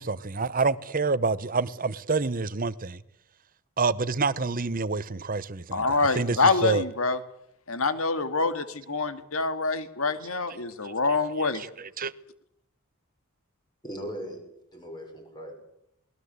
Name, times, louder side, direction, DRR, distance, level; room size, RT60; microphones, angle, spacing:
voice 1, 0.0-3.0 3.8-6.8 11.4-12.1, right 4 dB, 40° right, 0.9 m, -28 dB
voice 2, 5.7-7.2 7.7-11.6, left 3 dB, 65° left, 2.0 m, -26 dB
voice 3, 13.8-14.5 14.7-15.5, equal, 20° left, 6.1 m, -38 dB
28.0 x 20.0 x 8.2 m
head